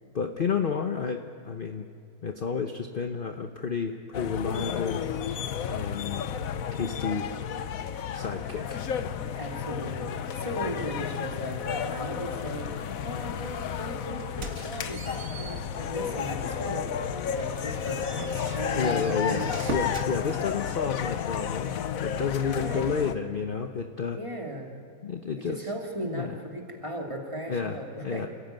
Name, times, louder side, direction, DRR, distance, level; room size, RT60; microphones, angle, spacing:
voice 1, 0.1-1.9 2.2-5.0 5.6-6.3 6.7-7.3 8.1-8.9 18.8-24.2 25.0-25.7 26.0-26.3 27.5-28.3, left 6 dB, 40° left, 6 dB, 0.9 m, -31 dB
sound 1, 4.1-23.1, left 8 dB, 65° left, 1.3 m, -32 dB
voice 2, 9.3-16.9 17.3-19.5 22.5-22.9 24.1-24.8 25.5-28.3, right 1 dB, 20° right, 0 dB, 2.6 m, -37 dB
sound 2, 14.2-16.3 16.7-16.9 17.3-20.1, right 2 dB, 50° right, 2.0 m, -40 dB
28.0 x 15.5 x 9.1 m, 2.5 s
omnidirectional pair, 1.6 m